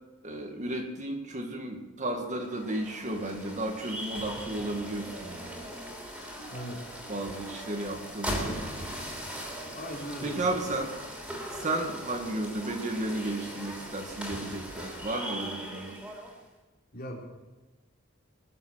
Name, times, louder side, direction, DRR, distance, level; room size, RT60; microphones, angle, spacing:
voice 1, 0.2-5.7 7.1-8.7 10.2-11.0 11.5-16.0, right 2 dB, 35° right, 3 dB, 1.9 m, -33 dB
sound 1, 2.4-16.4, equal, 5° right, 3.4 m, -39 dB
voice 2, 6.5-6.9 9.7-10.5 16.9-17.2, equal, 45° left, -2 dB, 3.8 m, -39 dB
21.0 x 7.4 x 7.6 m, 1.2 s
head